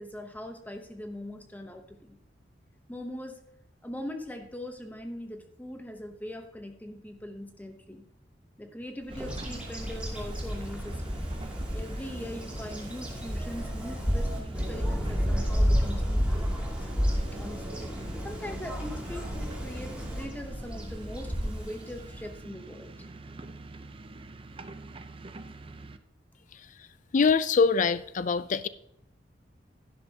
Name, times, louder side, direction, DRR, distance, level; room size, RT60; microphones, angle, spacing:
voice 1, 0.0-2.2 2.9-3.4 3.8-8.0 8.6-11.2 11.7-16.9 17.4-17.9 18.2-22.9, left 1 dB, 10° left, 0.8 m, -41 dB
Bird vocalization bird call bird song, 9.1-22.4, equal, 5° right, 2.6 m, -31 dB
sound 1, 9.1-26.0, right 2 dB, 30° right, 0.6 m, -45 dB
voice 2, 27.1-28.7, left 5 dB, 45° left, 0.4 m, -23 dB
11.5 x 11.0 x 2.8 m
head